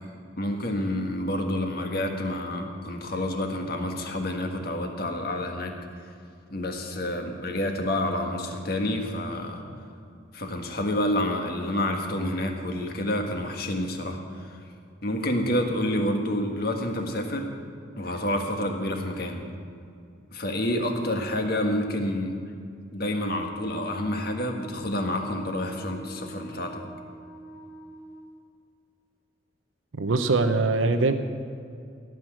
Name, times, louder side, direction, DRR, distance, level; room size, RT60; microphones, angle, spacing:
voice 1, 0.4-5.7 6.5-9.6 10.3-14.6 15.0-17.5 18.0-19.4 20.3-22.4 22.9-26.8, left 1 dB, 50° left, 3 dB, 1.6 m, -28 dB
Wind instrument woodwind instrument, 23.1-28.3, right 1 dB, 80° left, 3.1 m, -45 dB
voice 2, 29.9-31.1, right 3 dB, 90° right, 8 dB, 0.8 m, -22 dB
17.5 x 6.2 x 8.9 m, 2.4 s
head